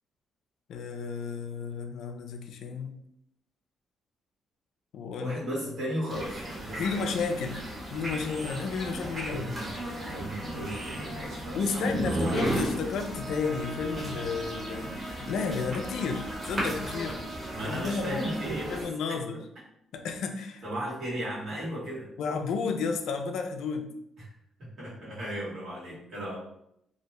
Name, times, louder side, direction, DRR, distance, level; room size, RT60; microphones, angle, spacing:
voice 1, 0.7-3.0 4.9-5.4 5.6-5.7 6.8-7.6 7.9-9.5 11.5-17.2 17.6-18.2 18.7-19.4 19.9-20.6 22.2-23.9, left 5 dB, 75° left, 5 dB, 0.3 m, -32 dB
voice 2, 5.2-7.1 9.1-12.4 17.5-18.8 20.6-22.1 24.2-24.3 24.8-26.4, equal, 70° right, -7 dB, 1.3 m, -36 dB
sound 1, 6.1-18.8, right 1 dB, 35° right, 1.1 m, -35 dB
Bowed string instrument, 13.0-18.6, right 2 dB, ahead, 0.8 m, -43 dB
2.5 x 2.0 x 2.9 m, 0.76 s
cardioid pair, 90°, 0 cm